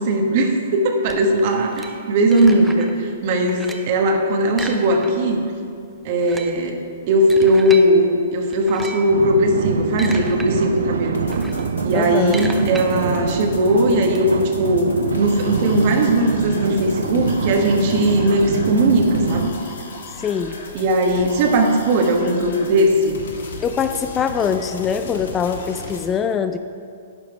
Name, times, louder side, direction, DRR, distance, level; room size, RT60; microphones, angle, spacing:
voice 1, 0.0-5.4 6.0-6.8 7.1-11.2 11.8-14.3 14.6-19.5 20.7-23.2, right 1 dB, 50° right, 3 dB, 1.2 m, -18 dB
sound 1, 1.1-3.0 3.3-4.0 4.5-5.4 5.7-5.8 6.1-7.9 8.5-9.1 9.7-10.5 10.8-14.2, right 2 dB, 5° right, 0.7 m, -35 dB
sound 2, 9.1-19.5, right 4 dB, 75° right, 0.5 m, -24 dB
sound 3, 11.1-26.1, left 3 dB, 70° left, 1.3 m, -37 dB
voice 2, 11.9-12.4 20.1-20.6 23.6-26.6, left 7 dB, 20° left, 10 dB, 0.3 m, -23 dB
11.0 x 5.1 x 4.7 m, 2.4 s
hypercardioid pair, 120°, 0 cm